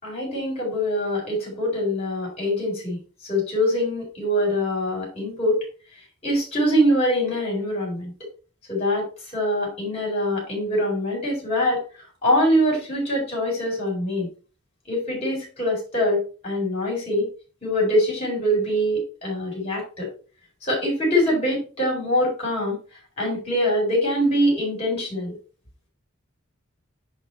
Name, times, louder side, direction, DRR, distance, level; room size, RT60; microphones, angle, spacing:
voice 1, 0.0-3.0 3.3-5.6 6.2-8.1 8.7-9.0 9.3-11.8 12.2-14.3 14.9-17.3 17.6-20.1 20.6-22.8 23.2-25.3, equal, 30° left, -2 dB, 4.3 m, -23 dB
10.0 x 3.4 x 4.4 m, 0.37 s
head